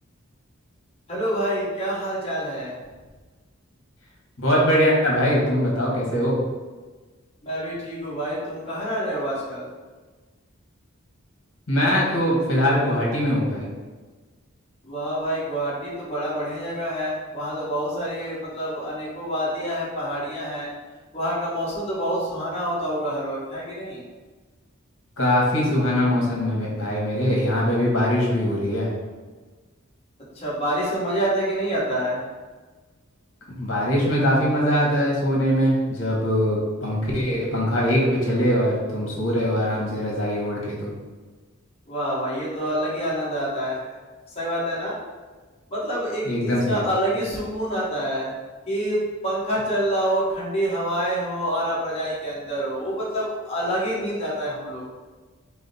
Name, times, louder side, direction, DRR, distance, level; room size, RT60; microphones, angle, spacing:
voice 1, 1.1-2.8 7.4-9.7 14.8-20.7 21.1-24.0 30.3-32.2 41.9-43.9 44.3-45.0 45.7-48.3 48.7-54.8, right 1 dB, 30° left, -6 dB, 1.2 m, -27 dB
voice 2, 4.4-6.4 11.7-13.7 25.2-28.9 33.5-40.9 46.3-46.8, equal, 65° left, -3 dB, 1.3 m, -22 dB
4.8 x 2.1 x 4.0 m, 1.3 s
head